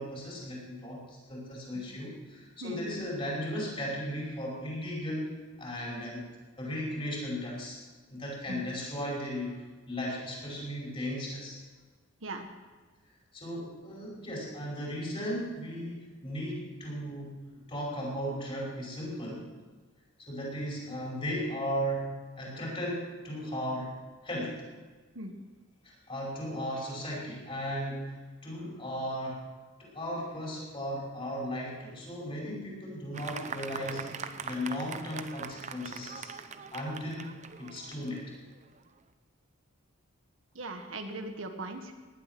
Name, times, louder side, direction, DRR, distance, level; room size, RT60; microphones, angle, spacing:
voice 1, 0.0-5.3 5.6-6.2 6.6-7.8 8.1-9.6 9.9-11.6 13.3-19.4 20.3-22.1 22.4-23.9 24.2-24.6 25.8-28.1 28.4-29.4 29.8-36.3 36.7-37.3 37.6-38.3, equal, 25° left, -4 dB, 5.5 m, -36 dB
Fireworks, 33.1-38.9, right 5 dB, 35° right, 0.7 m, -42 dB
voice 2, 40.5-41.9, right 2 dB, 70° right, 5 dB, 1.6 m, -39 dB
18.5 x 12.0 x 6.1 m, 1.4 s
head